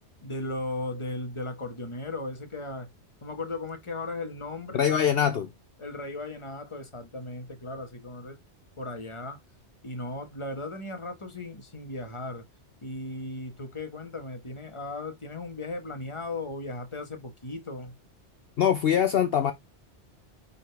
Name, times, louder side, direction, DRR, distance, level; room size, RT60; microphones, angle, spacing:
voice 1, 0.2-2.9 3.2-5.2 5.8-8.4 8.8-9.4 9.8-12.5 12.8-18.0, left 2 dB, 25° left, 1.4 m, -36 dB
voice 2, 4.7-5.5 18.6-19.5, left 9 dB, 60° left, 0.9 m, -23 dB
10.0 x 4.3 x 3.3 m
omnidirectional pair, 1.2 m